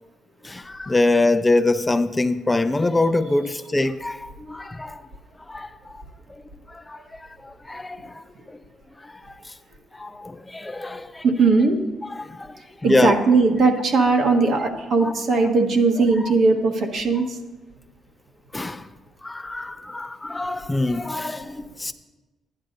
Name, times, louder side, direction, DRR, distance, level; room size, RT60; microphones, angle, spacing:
voice 1, 0.4-5.0 5.5-6.0 6.7-7.0 7.4-8.2 9.0-9.1 10.0-11.2 12.1-12.6 12.8-13.1 15.0-15.1 16.2-16.3 18.5-18.9 19.2-21.9, left 2 dB, 15° left, 0.4 m, -24 dB
voice 2, 11.2-11.8 12.8-17.4, right 3 dB, 65° right, 1.4 m, -19 dB
13.5 x 10.5 x 2.7 m
cardioid pair, 90°, 0 cm